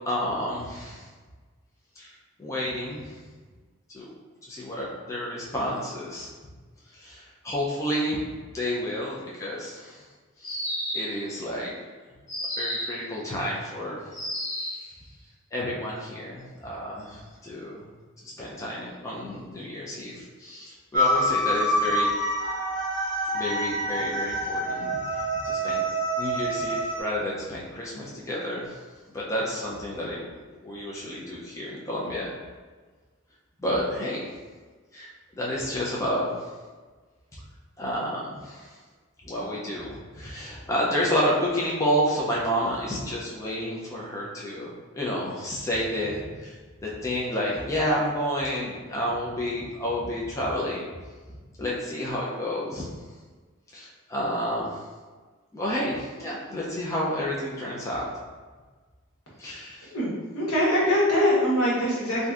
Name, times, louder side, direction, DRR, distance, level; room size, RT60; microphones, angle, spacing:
voice 1, 0.0-1.1 2.0-3.2 3.9-4.1 4.4-6.3 6.9-8.2 8.5-10.0 10.4-10.7 10.9-11.8 12.6-14.0 14.7-14.9 15.5-17.8 18.2-22.1 23.3-25.8 26.2-28.8 29.1-30.3 30.6-32.3 33.6-34.3 34.9-35.1 35.4-36.5 37.8-38.8 39.2-46.6 46.8-50.9 51.6-52.9 53.7-54.9 55.5-58.1 59.4-59.9, equal, 15° left, -5 dB, 0.3 m, -30 dB
sound 1, 10.4-11.2 12.3-13.0 14.1-14.8, equal, 45° left, 1.3 m, -31 dB
sound 2, 20.9-27.0, equal, 35° right, 0.6 m, -26 dB
voice 2, 59.9-62.3, equal, 80° left, -6 dB, 1.1 m, -23 dB
3.2 x 2.6 x 2.4 m, 1.4 s
head